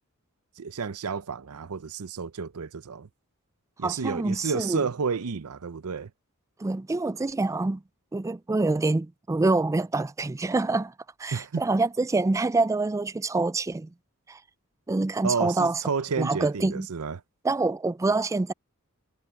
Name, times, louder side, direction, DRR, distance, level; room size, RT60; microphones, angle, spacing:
voice 1, 0.6-3.1 3.8-6.1 11.3-11.6 15.2-17.2, right 5 dB, 75° right, 0.6 m, -31 dB
voice 2, 3.8-4.8 6.6-7.8 8.1-10.9 11.2-13.9 14.3-14.4 14.9-15.8 16.2-16.9 17.4-18.5, right 3 dB, 15° right, 0.3 m, -26 dB
head